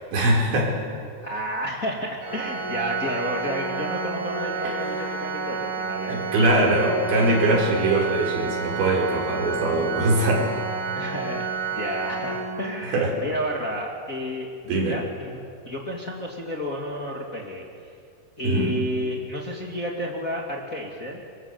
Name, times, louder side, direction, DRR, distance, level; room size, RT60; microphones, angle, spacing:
voice 1, 0.1-0.8 4.6-4.7 6.1-10.5 12.9-13.2 14.6-15.0 18.4-18.7, right 1 dB, 85° right, -1 dB, 6.8 m, -22 dB
voice 2, 1.2-6.2 10.9-14.5 14.9-17.7 18.4-21.2, equal, 25° left, -1 dB, 2.3 m, -31 dB
Organ, 2.2-13.1, right 4 dB, 55° right, 6.2 m, -30 dB
28.5 x 24.5 x 8.1 m, 2.2 s
omnidirectional pair, 5.0 m